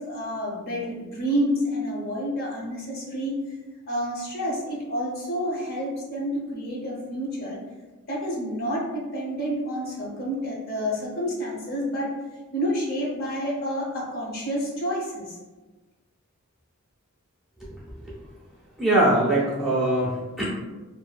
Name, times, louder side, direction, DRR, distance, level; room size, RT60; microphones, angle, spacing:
voice 1, 0.0-3.3 3.9-7.6 8.1-12.1 12.5-15.4, equal, 45° left, -4 dB, 0.6 m, -29 dB
voice 2, 18.8-20.5, right 1 dB, ahead, -8 dB, 0.4 m, -22 dB
2.5 x 2.2 x 2.2 m, 1.2 s
head